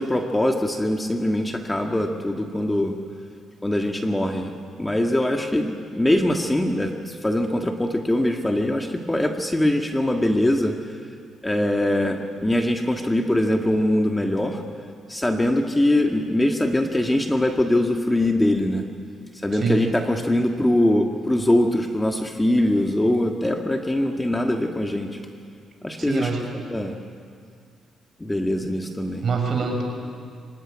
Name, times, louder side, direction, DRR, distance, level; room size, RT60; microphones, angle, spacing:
voice 1, 0.0-2.9 3.6-4.5 4.8-10.7 11.4-14.6 15.1-18.8 19.4-25.2 25.8-26.3 26.7-26.9 28.2-29.2, left 1 dB, 10° left, 3 dB, 1.6 m, -22 dB
voice 2, 19.5-19.8 26.0-26.6 29.2-29.8, right 4 dB, 50° right, 2 dB, 6.1 m, -25 dB
25.0 x 17.0 x 9.9 m, 2.2 s
cardioid pair, 90°, 0 cm